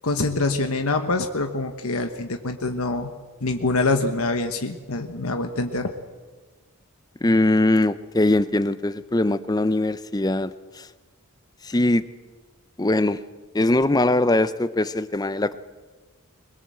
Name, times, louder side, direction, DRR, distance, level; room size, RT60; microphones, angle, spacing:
voice 1, 0.0-3.1 3.4-5.9, left 3 dB, 85° left, 6 dB, 1.3 m, -25 dB
voice 2, 7.2-10.9 11.6-12.0 12.8-13.2 13.5-15.6, left 2 dB, 20° left, 14 dB, 0.6 m, -21 dB
22.0 x 21.5 x 7.7 m, 1.4 s
head